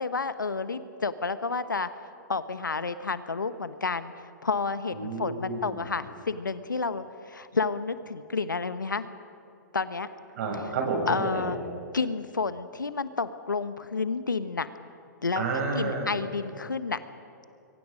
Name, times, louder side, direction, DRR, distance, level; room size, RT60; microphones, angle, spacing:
voice 1, 0.0-1.9 2.3-4.1 4.4-9.1 9.7-10.1 11.1-11.6 11.9-14.7 15.2-15.4 15.7-17.0, left 4 dB, 90° left, 12 dB, 1.2 m, -30 dB
voice 2, 4.9-5.8 10.4-11.5 15.4-16.1, right 3 dB, 55° right, 1 dB, 7.4 m, -30 dB
26.0 x 23.0 x 5.2 m, 2.7 s
hypercardioid pair, 120°, 10 cm